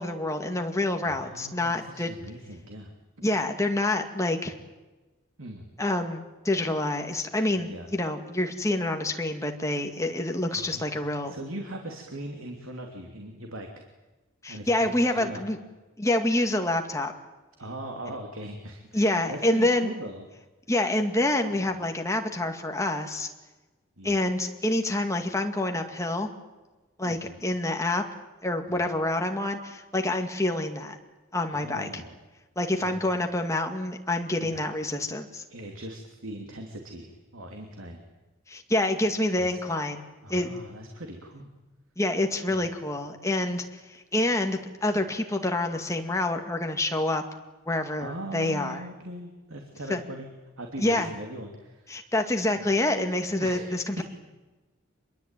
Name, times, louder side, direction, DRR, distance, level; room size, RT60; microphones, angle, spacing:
voice 1, 0.0-2.1 3.2-4.5 5.8-11.3 14.4-15.6 16.0-17.1 18.9-19.9 20.7-23.3 24.0-26.3 27.0-28.0 28.4-31.0 31.3-32.0 32.6-35.4 38.5-40.0 40.3-40.5 42.0-47.2 47.7-48.8 49.9-50.0 50.8-51.1 51.9-54.0, left 1 dB, 15° left, 4 dB, 2.2 m, -27 dB
voice 2, 1.0-2.9 3.2-3.3 5.4-5.7 7.6-7.9 10.5-13.8 14.5-15.4 17.6-20.3 21.5-21.7 24.0-24.2 27.0-27.4 28.7-28.9 31.5-32.2 32.7-33.0 34.4-34.6 35.5-38.0 39.4-39.6 40.2-41.5 42.5-42.6 48.0-50.3 50.6-51.9 52.5-52.6 53.4-53.9, right 1 dB, 80° right, 3 dB, 3.0 m, -40 dB
26.5 x 22.5 x 9.2 m, 1.2 s
head